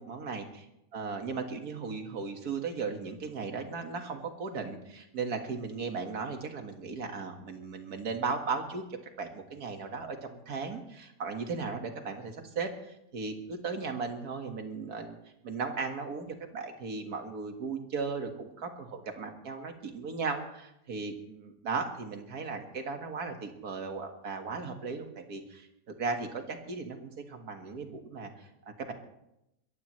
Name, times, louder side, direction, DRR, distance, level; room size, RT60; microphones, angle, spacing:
voice 1, 0.0-0.4 0.9-8.8 9.2-15.2 15.4-25.7 26.0-28.9, right 4 dB, 70° right, 5 dB, 2.2 m, -36 dB
22.0 x 15.0 x 3.2 m, 0.83 s
omnidirectional pair, 1.7 m